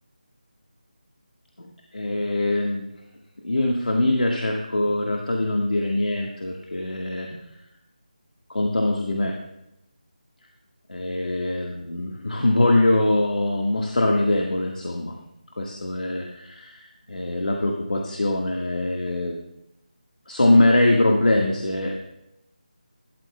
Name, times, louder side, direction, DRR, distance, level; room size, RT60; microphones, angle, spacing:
voice 1, 1.6-2.9 3.4-7.5 8.5-9.3 10.9-15.1 15.6-19.4 20.3-22.0, left 1 dB, 80° left, 0 dB, 1.5 m, -23 dB
13.0 x 12.5 x 2.2 m, 0.85 s
figure-of-eight pair, 165°, 5 cm